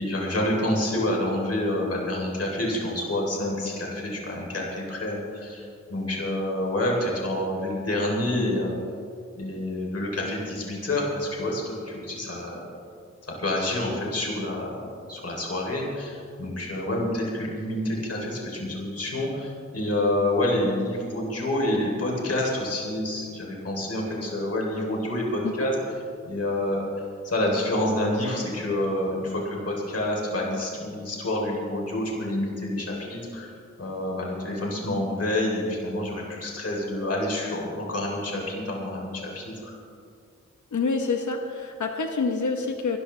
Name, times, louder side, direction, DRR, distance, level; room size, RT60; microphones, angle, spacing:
voice 1, 0.0-8.8 9.4-12.6 13.4-14.8 15.1-25.7 26.3-26.8 27.2-33.5 33.8-39.7, left 1 dB, 55° left, -2 dB, 3.5 m, -28 dB
voice 2, 40.7-43.0, left 4 dB, 90° left, 3 dB, 1.1 m, -27 dB
23.5 x 13.0 x 3.3 m, 2.3 s
wide cardioid pair, 125°, 29 cm